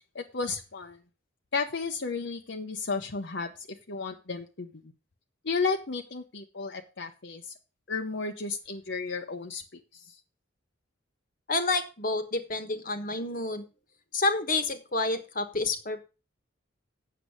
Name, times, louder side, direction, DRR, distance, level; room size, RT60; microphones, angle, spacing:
voice 1, 0.1-1.0 1.5-3.5 3.9-4.7 5.4-7.5 7.9-10.1, left 4 dB, 60° left, 4 dB, 0.9 m, -33 dB
voice 2, 11.5-13.6 14.1-16.0, left 3 dB, 45° left, 9 dB, 1.3 m, -29 dB
8.2 x 6.8 x 6.4 m, 0.32 s
head